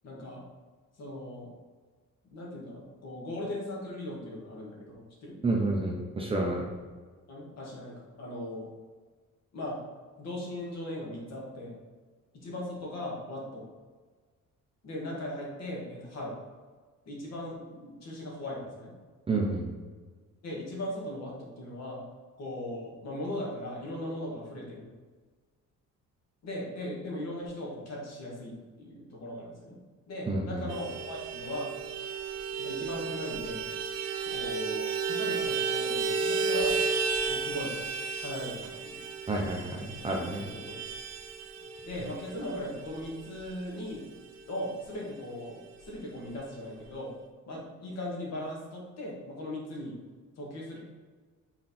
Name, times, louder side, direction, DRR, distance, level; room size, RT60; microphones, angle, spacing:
voice 1, 0.0-0.5 1.0-1.5 2.3-5.4 7.3-8.6 9.5-9.8 10.2-11.8 12.3-13.6 14.8-16.4 17.1-18.9 20.4-22.1 22.4-24.8 26.4-29.8 30.1-31.7 32.6-33.7 34.3-36.8 37.3-37.8 38.2-39.0 40.4-40.8 41.8-44.0 44.5-47.1 47.5-49.9 50.4-50.8, left 1 dB, 55° left, -3 dB, 1.8 m, -38 dB
voice 2, 5.4-6.7 19.3-19.7 30.3-30.6 39.3-40.4, right 2 dB, 15° right, -1 dB, 0.7 m, -29 dB
Vehicle horn car horn honking, 30.7-44.6 44.9-45.0 45.3-45.5 45.7-46.4, right 5 dB, 55° right, 0.7 m, -33 dB
5.9 x 3.9 x 4.2 m, 1.4 s
cardioid pair, 160°, 32 cm